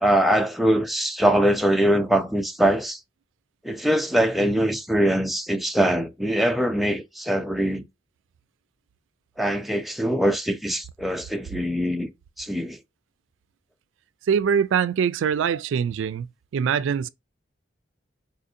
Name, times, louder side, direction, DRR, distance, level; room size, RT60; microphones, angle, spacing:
voice 1, 0.0-3.0 3.6-7.8 9.4-12.1 12.4-12.8, right 1 dB, ahead, 0.3 m, -22 dB
voice 2, 14.3-16.3 16.5-17.1, right 7 dB, 85° right, 0.3 m, -23 dB
3.9 x 2.5 x 2.6 m
head